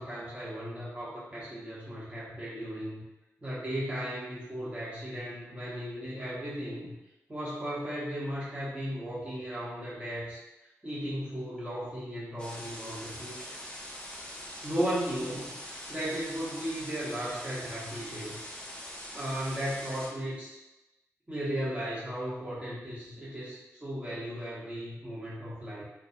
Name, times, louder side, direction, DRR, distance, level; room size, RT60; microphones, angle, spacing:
voice 1, 0.0-3.0 3.4-6.9 7.3-10.4 10.8-13.5 14.6-15.6 15.9-18.4 19.1-20.6 21.3-25.8, equal, 25° right, -8 dB, 0.9 m, -36 dB
sound 1, 12.4-20.1, equal, 20° left, 0.5 m, -43 dB
2.2 x 2.2 x 2.6 m, 0.98 s
wide cardioid pair, 110°, 6 cm